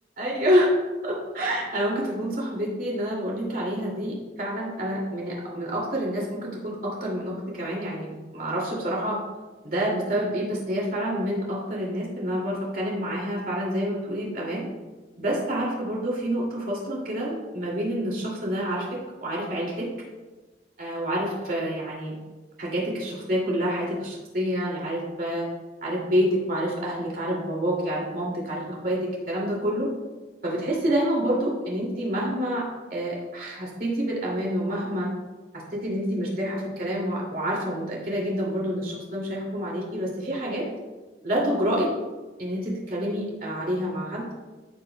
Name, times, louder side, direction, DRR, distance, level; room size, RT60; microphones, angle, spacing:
voice 1, 0.2-0.7 1.0-9.2 9.6-14.6 15.2-19.9 20.8-22.2 22.6-25.5 25.8-29.9 30.4-35.1 35.7-40.6 41.2-41.9 42.4-44.3, equal, 50° right, -4 dB, 2.5 m, -28 dB
14.5 x 4.9 x 2.3 m, 1.3 s
head